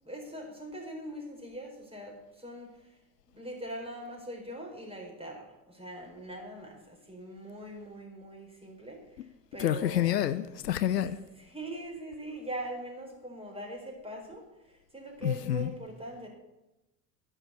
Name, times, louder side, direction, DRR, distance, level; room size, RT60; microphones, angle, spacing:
voice 1, 0.0-2.8 3.3-9.0 9.5-10.2 11.4-14.4 14.9-16.3, right 1 dB, 10° right, 4.3 m, -41 dB
voice 2, 9.6-11.2 15.2-15.7, left 12 dB, 80° left, 0.7 m, -28 dB
10.5 x 7.1 x 8.2 m
figure-of-eight pair, 65°, 49 cm